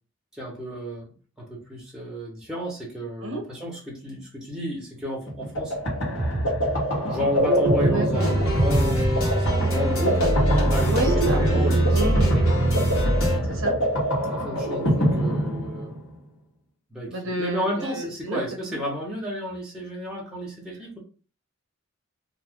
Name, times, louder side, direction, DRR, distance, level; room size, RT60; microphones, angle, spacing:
voice 1, 0.3-5.7 7.0-10.3 10.5-12.4 14.3-15.9 16.9-21.0, equal, 5° right, -4 dB, 0.9 m, -32 dB
sound 1, 5.3-16.1, equal, 60° left, 1.3 m, -24 dB
sound 2, 8.1-13.4, right 1 dB, 85° left, 1.3 m, -23 dB
voice 2, 10.9-11.5 11.9-12.3 13.4-13.8 17.1-18.8, right 2 dB, 70° right, 2 dB, 0.8 m, -30 dB
2.6 x 2.4 x 3.6 m, 0.37 s
head